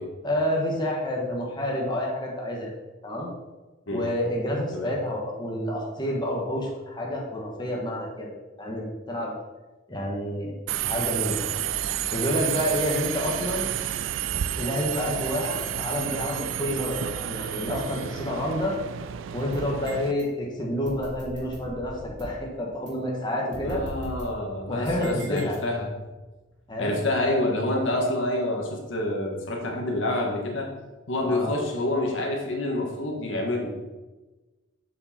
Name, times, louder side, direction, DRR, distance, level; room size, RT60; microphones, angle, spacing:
voice 1, 0.2-2.7 3.0-3.3 3.9-9.3 9.9-10.5 10.8-11.4 12.1-13.7 14.6-18.7 19.3-23.8 24.7-25.6 26.7-27.0 31.2-31.5, left 1 dB, 20° left, -3 dB, 1.4 m, -29 dB
Subway metro underground, 10.7-20.1, right 10 dB, 80° right, 0.4 m, -30 dB
sound 1, 19.5-20.2 20.8-22.4 22.9-23.0 23.5-26.0, right 1 dB, 60° right, 2.2 m, -41 dB
voice 2, 23.6-25.9 26.8-30.7 31.1-33.8, left 1 dB, 75° left, 0 dB, 1.6 m, -27 dB
7.2 x 6.6 x 4.3 m, 1.2 s
head